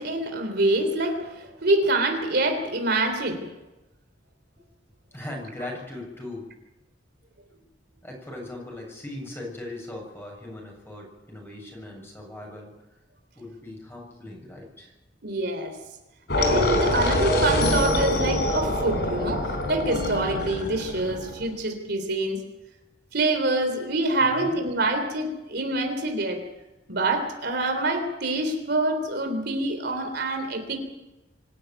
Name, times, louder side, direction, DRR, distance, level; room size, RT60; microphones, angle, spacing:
voice 1, 0.0-3.5 15.2-15.7 16.4-22.4 23.1-26.4 26.9-30.8, right 2 dB, 60° right, 5 dB, 3.5 m, -26 dB
voice 2, 5.1-6.5 8.0-12.7 13.4-14.9 24.2-24.6, left 1 dB, 15° left, 0 dB, 7.5 m, -39 dB
sound 1, 16.3-21.4, left 1 dB, 65° left, 4.4 m, -25 dB
25.5 x 12.0 x 9.2 m, 1.0 s
head